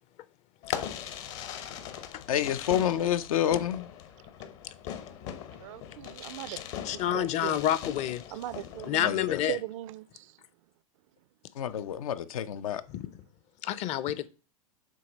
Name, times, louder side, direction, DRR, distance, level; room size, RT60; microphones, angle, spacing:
Fireworks, 0.6-9.0, left 9 dB, 55° left, 1.1 m, -40 dB
voice 1, 2.3-3.9 9.0-9.4 11.6-12.8, left 10 dB, 80° left, 0.6 m, -28 dB
voice 2, 5.6-6.6 6.9-7.5 8.3-9.2 9.5-10.3, right 16 dB, 60° right, 0.4 m, -38 dB
voice 3, 6.8-8.2 8.9-9.6 12.9-13.1 13.6-14.3, left 12 dB, 40° left, 0.6 m, -28 dB
7.5 x 3.2 x 5.1 m
hypercardioid pair, 110°, 18 cm